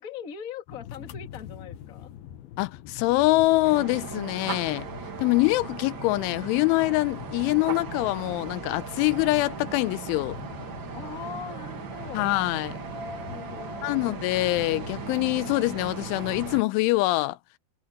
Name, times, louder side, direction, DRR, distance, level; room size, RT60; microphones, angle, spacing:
voice 1, 0.0-2.1 10.9-12.3 13.3-14.2, left 7 dB, 40° left, 1.2 m, -41 dB
sound 1, 0.7-16.6, left 11 dB, 70° left, 2.6 m, -44 dB
voice 2, 2.6-4.9 5.2-10.4 12.1-12.7 13.8-17.4, left 21 dB, 90° left, 3.1 m, -24 dB
sound 2, 3.6-16.6, right 6 dB, 70° right, 1.1 m, -38 dB
omnidirectional pair, 5.4 m